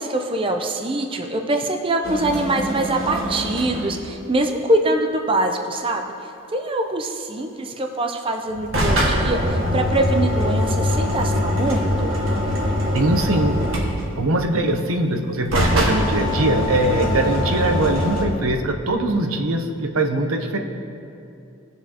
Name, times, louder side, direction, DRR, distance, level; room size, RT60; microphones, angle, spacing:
voice 1, 0.0-6.0 6.5-12.1, right 2 dB, 25° right, 4 dB, 0.6 m, -23 dB
sound 1, 2.0-4.0 8.5-14.3 15.4-18.2, left 1 dB, 70° right, 1.9 m, -22 dB
voice 2, 12.9-13.6 14.2-20.6, right 2 dB, 85° right, 4 dB, 0.9 m, -21 dB
19.0 x 7.0 x 2.9 m, 2.6 s
head